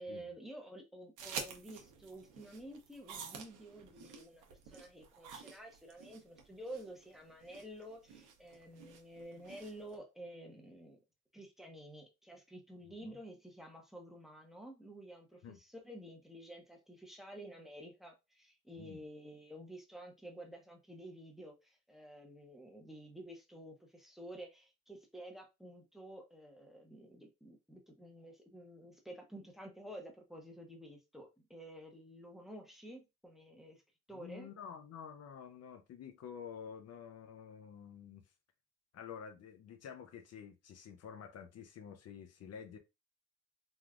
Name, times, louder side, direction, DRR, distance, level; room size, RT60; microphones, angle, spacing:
voice 1, 0.0-11.0 11.3-33.8 34.1-34.5, right 1 dB, ahead, 0.7 m, -51 dB
sound 1, 1.2-10.0, right 6 dB, 85° right, 0.7 m, -49 dB
voice 2, 34.1-38.2 38.9-42.8, left 7 dB, 55° left, 0.5 m, -49 dB
3.4 x 2.4 x 2.3 m
cardioid pair, 90°, 30 cm